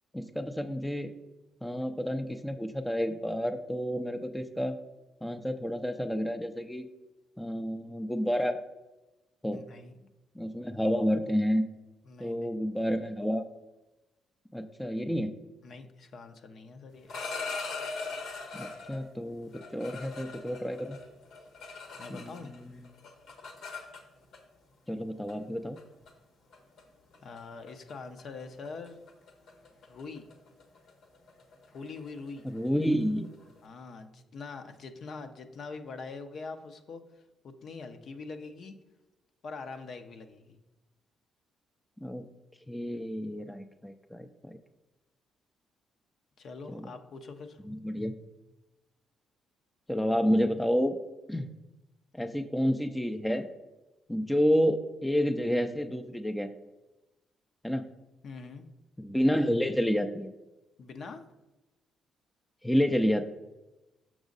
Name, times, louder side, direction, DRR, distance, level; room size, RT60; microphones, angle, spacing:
voice 1, 0.1-1.1 1.6-4.8 5.2-6.8 7.4-8.6 9.4-9.6 10.3-11.6 12.2-13.4 14.5-15.3 18.5-21.0 22.1-22.7 24.9-25.8 32.4-33.3 42.0-42.2 42.7-44.6 46.7-46.9 47.7-48.2 49.9-51.0 51.3-51.5 52.1-53.5 54.1-56.5 57.6-57.9 59.0-60.3 62.6-63.3, equal, 5° left, 7 dB, 0.5 m, -29 dB
voice 2, 9.5-9.9 12.1-12.5 15.6-17.1 22.0-22.5 27.2-29.0 29.8-30.3 31.7-32.5 33.6-37.0 37.4-38.8 39.4-40.6 46.4-47.6 58.2-58.7 60.8-61.2, left 4 dB, 60° left, 7 dB, 0.7 m, -43 dB
sound 1, 16.9-19.0 19.5-22.6 22.8-24.4 25.3-25.4 25.8-26.1 26.5-26.8 27.1-27.4 27.7-27.9 28.2-33.6, left 4 dB, 75° left, 1.3 m, -41 dB
6.2 x 6.1 x 3.9 m, 1.0 s
cardioid pair, 90°, 0 cm